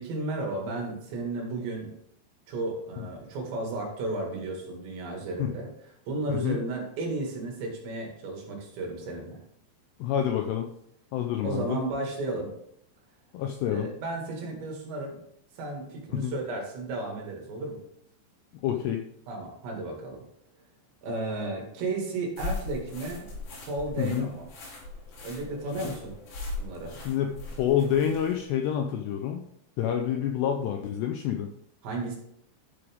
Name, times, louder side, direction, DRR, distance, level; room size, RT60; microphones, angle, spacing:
voice 1, 0.0-1.9 2.5-5.7 6.1-9.4 11.4-12.5 13.7-15.2 15.6-17.8 19.3-20.2 21.0-23.3 23.7-24.5 25.2-26.2 26.6-27.0 31.8-32.2, right 2 dB, 65° right, 0 dB, 4.2 m, -33 dB
voice 2, 6.3-6.6 10.0-10.7 11.1-11.8 13.3-13.9 16.1-16.3 18.6-19.0 24.0-24.3 25.8-25.9 26.9-27.3 27.6-29.4 29.8-31.5, left 9 dB, 80° left, 4 dB, 2.4 m, -28 dB
sound 1, 22.4-28.4, left 3 dB, 60° left, 4.9 m, -39 dB
12.0 x 6.9 x 3.6 m, 0.71 s
omnidirectional pair, 5.6 m